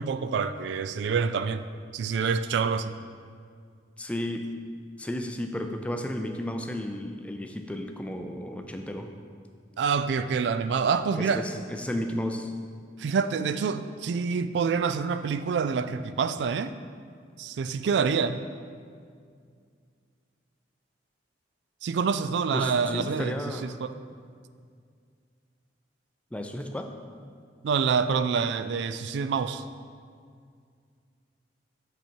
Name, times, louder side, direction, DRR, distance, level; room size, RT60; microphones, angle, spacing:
voice 1, 0.0-1.6 1.9-2.9 9.8-11.5 13.0-16.7 17.4-18.4 21.8-23.9 27.6-29.6, right 5 dB, 75° right, 12 dB, 0.3 m, -27 dB
voice 2, 4.0-4.5 5.0-9.1 11.2-12.5 22.5-23.7 26.3-26.9, left 1 dB, 5° left, 5 dB, 0.4 m, -33 dB
7.0 x 5.6 x 4.5 m, 2.1 s
head